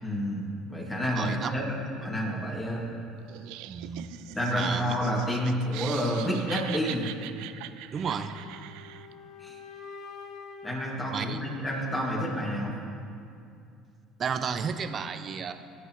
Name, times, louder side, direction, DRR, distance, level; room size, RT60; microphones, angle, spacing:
voice 1, 0.0-1.8 2.0-2.8 4.3-7.1 9.4-9.6 10.6-12.7, equal, 15° left, -3 dB, 2.4 m, -29 dB
voice 2, 1.1-1.5 2.0-2.1 3.7-4.1 4.5-4.9 7.9-8.4 11.1-11.6 14.2-15.5, right 6 dB, 40° right, 9 dB, 0.7 m, -32 dB
Laughter, 3.3-9.1, right 14 dB, 80° right, 0.4 m, -42 dB
sound 1, 8.1-12.1, left 5 dB, 60° left, 1.1 m, -47 dB
19.0 x 8.1 x 3.1 m, 2.5 s
supercardioid pair, 100°, 0 cm